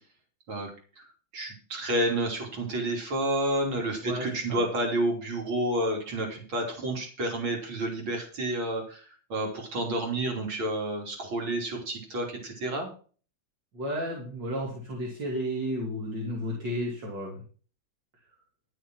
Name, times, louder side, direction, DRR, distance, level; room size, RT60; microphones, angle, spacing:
voice 1, 1.3-12.9, right 1 dB, 80° right, 1 dB, 3.8 m, -30 dB
voice 2, 4.0-4.6 13.7-17.4, equal, 65° right, -2 dB, 3.3 m, -33 dB
12.0 x 6.5 x 6.1 m, 0.40 s
omnidirectional pair, 2.2 m